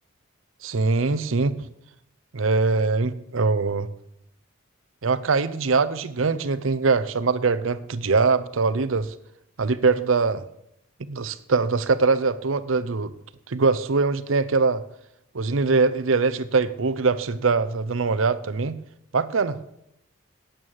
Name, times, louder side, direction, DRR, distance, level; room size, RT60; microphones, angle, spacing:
voice 1, 0.6-1.7 2.3-3.9 5.0-9.1 9.6-10.4 11.0-13.1 13.5-14.8 15.3-18.8 19.1-19.6, right 4 dB, 80° right, 15 dB, 0.7 m, -22 dB
9.0 x 8.9 x 6.4 m, 0.77 s
head